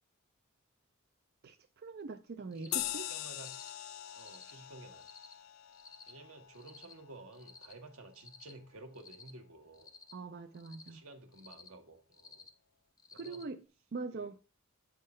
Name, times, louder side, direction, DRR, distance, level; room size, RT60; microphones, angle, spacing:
voice 1, 1.8-3.0 10.1-11.0 13.1-13.6 13.9-14.3, right 4 dB, 50° right, 0.4 m, -42 dB
voice 2, 2.4-3.5 4.1-5.1 6.1-9.9 10.8-12.5 13.1-13.5 14.1-14.3, right 2 dB, 85° right, 1.3 m, -53 dB
Cricket, 2.5-2.9 3.3-3.7 4.1-4.5 5.0-5.3 5.7-6.1 6.5-6.9 7.3-7.7 8.1-8.5 8.9-9.3 9.7-10.1 10.5-10.9 11.3-11.7 12.1-12.5 13.0-13.4, left 5 dB, 15° left, 0.5 m, -54 dB
sound 1, 2.7-7.6, left 14 dB, 70° left, 0.3 m, -43 dB
8.4 x 3.6 x 5.4 m
head